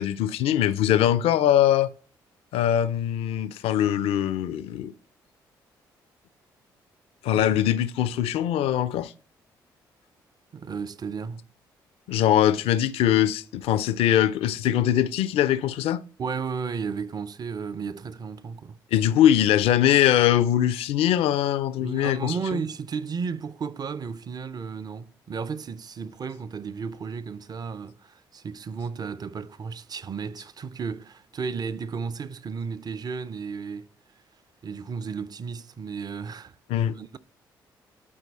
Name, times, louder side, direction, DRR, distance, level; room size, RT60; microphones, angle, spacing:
voice 1, 0.0-1.9 2.5-4.9 7.2-9.1 12.1-16.0 18.9-22.3 36.7-37.0, left 11 dB, 70° left, 0.5 m, -22 dB
voice 2, 7.3-7.6 10.5-11.4 16.2-18.8 21.8-33.9 34.6-36.6 36.9-37.2, right 5 dB, 40° right, 0.6 m, -33 dB
11.0 x 4.6 x 4.1 m
hypercardioid pair, 45°, 10 cm